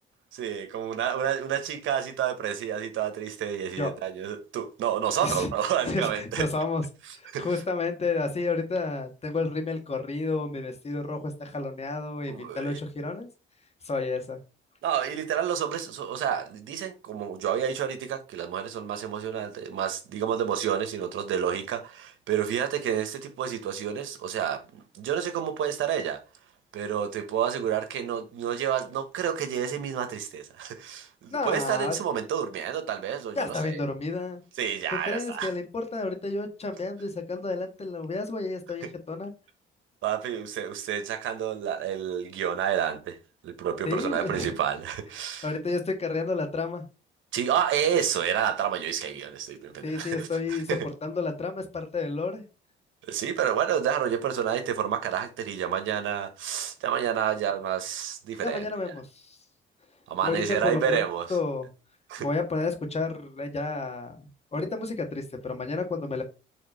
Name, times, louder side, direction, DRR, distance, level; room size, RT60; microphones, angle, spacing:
voice 1, 0.3-6.5 7.2-7.6 12.3-12.8 14.8-26.2 26.7-33.8 34.6-35.5 38.8-38.9 40.0-43.2 43.4-45.5 47.3-50.9 53.1-58.7 60.1-61.3 62.1-62.3, right 9 dB, 80° right, 1.2 m, -29 dB
voice 2, 5.8-6.8 7.1-13.3 13.8-14.4 31.3-32.0 33.4-34.4 34.9-39.3 43.8-44.5 45.4-46.8 49.8-52.4 58.4-59.4 60.2-61.0 61.3-61.7 62.2-66.2, left 3 dB, 30° left, 1.7 m, -31 dB
4.8 x 3.6 x 5.6 m
cardioid pair, 90°, 20 cm